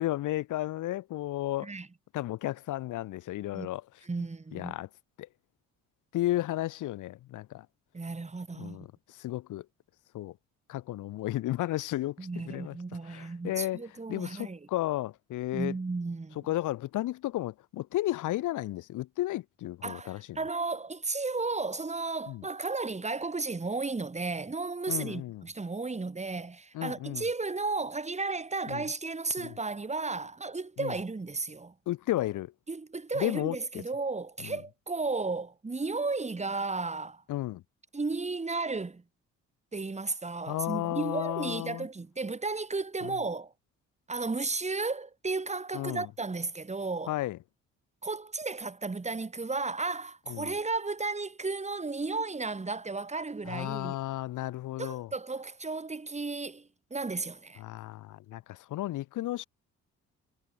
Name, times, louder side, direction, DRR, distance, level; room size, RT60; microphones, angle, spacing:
voice 1, 0.0-1.7 2.1-3.8 4.5-4.9 5.2-5.3 6.1-7.7 8.6-9.7 10.1-10.3 10.7-12.8 13.1-13.8 14.1-15.7 16.5-20.4 22.3-22.4 24.9-25.5 26.7-27.2 28.7-28.8 29.4-29.5 30.8-30.9 31.9-32.5 33.2-33.8 34.4-34.6 37.3-37.6 40.5-41.9 43.0-43.1 45.7-46.1 47.1-47.4 50.3-50.5 53.5-55.1 57.6-59.5, left 15 dB, 85° left, 2.1 m, -33 dB
voice 2, 4.0-4.7 7.9-8.9 12.2-14.7 15.5-16.5 19.8-31.7 32.7-37.2 37.9-39.0 39.7-43.5 44.1-47.1 48.0-54.0 54.8-57.6, right 3 dB, 20° right, 5.1 m, -34 dB
cardioid pair, 90°, 30 cm